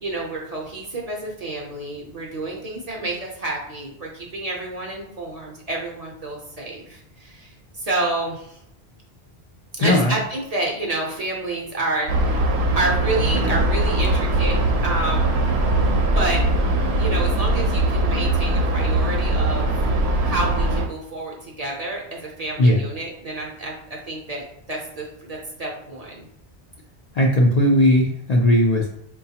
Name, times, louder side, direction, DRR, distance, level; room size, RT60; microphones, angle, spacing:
voice 1, 0.0-8.6 9.7-15.4 16.1-16.5 17.0-19.8 20.2-26.3, right 2 dB, 45° right, -2 dB, 0.6 m, -29 dB
voice 2, 9.8-10.2 22.6-22.8 27.1-28.9, left 1 dB, 55° left, -2 dB, 0.4 m, -17 dB
sound 1, 12.1-20.9, right 1 dB, 80° right, 0.8 m, -21 dB
4.7 x 2.2 x 2.8 m, 0.70 s
omnidirectional pair, 1.1 m